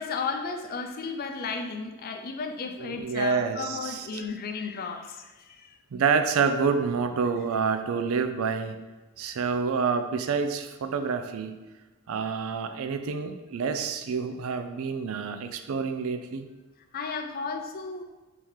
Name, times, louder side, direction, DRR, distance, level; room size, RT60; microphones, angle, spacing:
voice 1, 0.0-5.8 16.9-18.0, left 4 dB, 40° left, 5 dB, 0.4 m, -34 dB
voice 2, 2.8-4.2 5.9-8.8 9.2-11.5 12.1-16.5, right 5 dB, 65° right, 8 dB, 0.4 m, -28 dB
3.6 x 2.8 x 4.7 m, 1.2 s
head